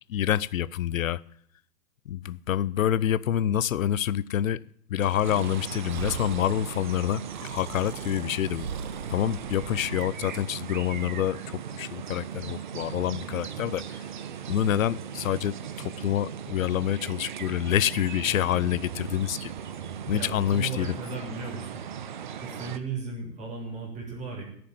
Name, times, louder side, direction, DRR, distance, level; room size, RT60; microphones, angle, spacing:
voice 1, 0.1-1.2 2.1-4.6 4.9-8.7 9.1-14.0 14.5-19.5 20.1-20.9, left 11 dB, 55° left, 0.6 m, -27 dB
Breathing, 5.0-10.1, right 6 dB, 65° right, 1.5 m, -40 dB
sound 1, 5.2-22.8, right 8 dB, 30° right, 0.6 m, -38 dB
voice 2, 20.1-21.8 22.4-24.4, right 4 dB, 15° right, 3.3 m, -36 dB
13.5 x 7.8 x 9.1 m
hypercardioid pair, 150°, 48 cm